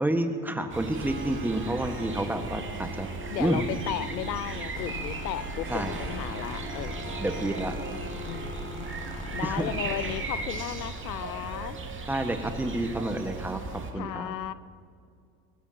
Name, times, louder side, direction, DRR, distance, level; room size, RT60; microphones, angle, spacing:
voice 1, 0.0-3.1 3.4-3.6 5.7-6.0 7.2-7.7 9.4-9.6 12.1-14.3, right 1 dB, 5° right, 6 dB, 1.5 m, -29 dB
sound 1, 0.7-13.9, right 3 dB, 25° right, 2.3 m, -37 dB
Harp, 0.8-12.7, right 4 dB, 75° right, 4.8 m, -43 dB
voice 2, 3.3-7.5 8.3-8.9 9.3-11.8 14.0-14.5, left 12 dB, 85° left, 17 dB, 0.6 m, -35 dB
sound 2, 4.8-10.3, left 4 dB, 60° left, 1.3 m, -41 dB
23.5 x 18.0 x 2.9 m, 2.3 s
hypercardioid pair, 70°, 49 cm